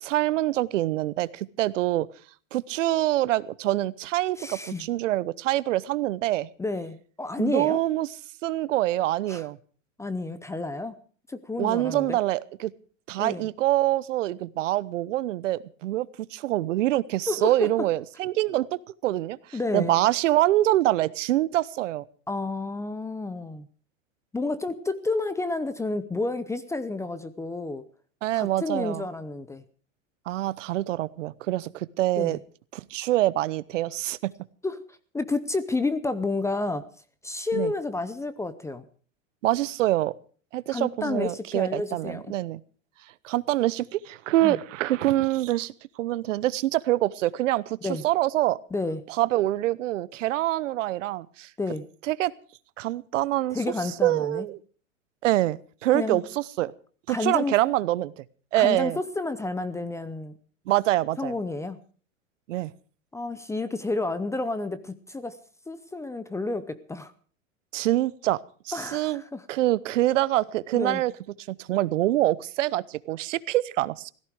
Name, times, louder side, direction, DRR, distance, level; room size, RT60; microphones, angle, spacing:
voice 1, 0.0-2.1 2.5-6.5 7.4-8.1 8.4-9.6 11.6-12.7 13.1-22.0 28.2-29.0 30.3-32.4 32.7-34.3 37.5-37.7 39.4-40.1 40.5-42.6 43.2-48.6 49.1-51.5 52.1-52.3 52.8-53.6 54.0-54.6 55.2-56.7 57.1-58.2 58.5-59.0 60.7-61.3 62.5-62.7 67.7-68.4 68.6-69.2 69.5-71.1 71.5-74.1, right 15 dB, 70° right, 20 dB, 0.9 m, -25 dB
voice 2, 4.4-4.9 6.6-7.8 9.3-9.4 10.0-11.0 11.3-12.2 13.2-13.4 17.3-17.7 19.5-20.0 22.3-23.7 24.3-27.8 28.3-29.6 32.2-32.4 34.6-34.8 35.1-36.9 37.2-38.8 40.7-42.3 44.4-44.6 47.8-48.0 48.7-49.0 51.6-51.9 53.5-54.5 55.9-56.2 57.1-57.6 58.6-60.3 61.2-61.8 63.1-65.4 65.7-67.1 68.7-69.4 70.7-71.0, left 3 dB, 5° left, 14 dB, 0.7 m, -30 dB
17.0 x 15.0 x 4.8 m, 0.43 s
hypercardioid pair, 120°, 39 cm